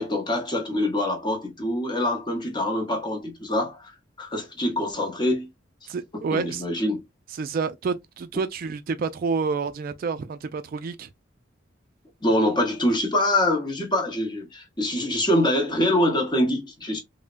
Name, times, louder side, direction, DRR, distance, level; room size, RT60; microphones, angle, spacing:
voice 1, 0.0-3.9 4.2-5.5 6.1-7.0 12.2-17.0, left 1 dB, 25° left, 0.8 m, -24 dB
voice 2, 5.9-6.6 7.3-11.1, right 5 dB, 45° right, 0.3 m, -28 dB
3.4 x 2.1 x 2.4 m
head